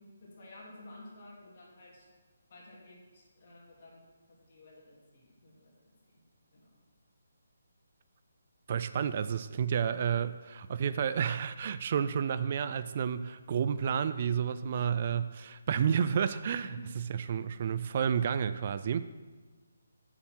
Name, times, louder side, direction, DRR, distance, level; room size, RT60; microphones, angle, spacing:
voice 1, 0.0-2.1 2.5-6.2 6.5-6.7 16.6-17.2, left 2 dB, 45° left, -4 dB, 3.0 m, -53 dB
voice 2, 8.7-19.1, right 7 dB, 40° right, 13 dB, 0.3 m, -31 dB
8.7 x 7.4 x 4.5 m, 1.3 s
hypercardioid pair, 165°, 0 cm